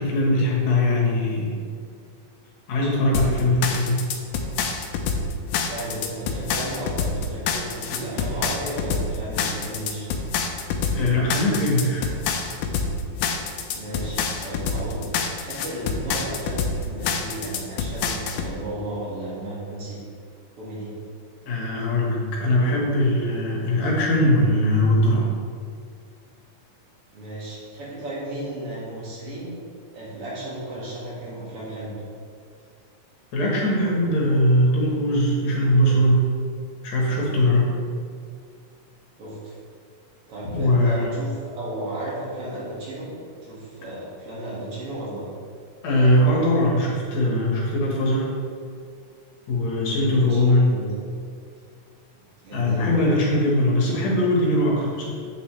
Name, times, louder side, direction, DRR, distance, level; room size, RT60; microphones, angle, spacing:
voice 1, 0.0-1.6 2.7-4.0 10.9-12.0 21.5-25.3 33.3-36.3 36.8-37.7 40.5-41.1 45.8-48.3 49.5-50.7 52.5-55.1, left 1 dB, 65° left, -3 dB, 2.7 m, -21 dB
sound 1, 3.1-18.5, left 5 dB, 85° left, 2.1 m, -27 dB
voice 2, 5.7-10.1 13.7-20.0 20.6-20.9 27.1-29.6 29.9-31.9 39.2-39.5 40.3-43.1 43.4-45.3 50.0-50.9 52.4-53.0, right 1 dB, 50° right, -7 dB, 2.9 m, -34 dB
8.4 x 6.8 x 3.4 m, 2.2 s
omnidirectional pair, 3.6 m